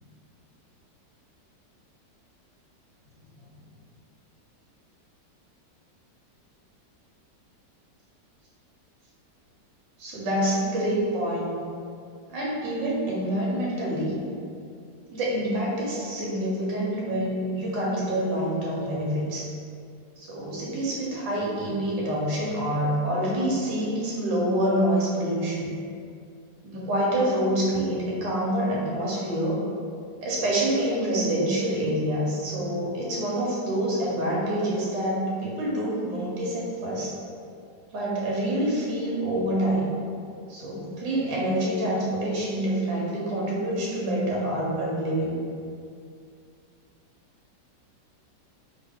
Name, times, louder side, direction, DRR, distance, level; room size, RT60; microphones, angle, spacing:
voice 1, 10.0-11.6 12.3-14.2 15.1-19.5 20.2-25.7 26.6-29.6 30.2-37.1 37.9-39.9 40.5-45.4, right 1 dB, 85° right, -4 dB, 1.5 m, -26 dB
3.1 x 2.4 x 3.5 m, 2.3 s
omnidirectional pair, 1.9 m